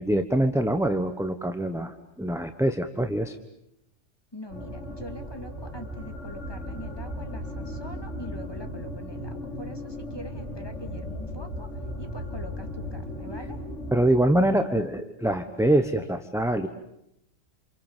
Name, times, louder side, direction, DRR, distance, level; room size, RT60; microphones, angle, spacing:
voice 1, 0.0-3.4 13.9-16.7, right 1 dB, ahead, 7 dB, 1.1 m, -24 dB
voice 2, 4.3-11.7 12.0-13.6, equal, 20° left, 5 dB, 2.7 m, -43 dB
sound 1, 4.5-14.0, left 1 dB, 65° left, 5.5 m, -36 dB
28.5 x 28.0 x 7.5 m, 0.82 s
omnidirectional pair, 1.3 m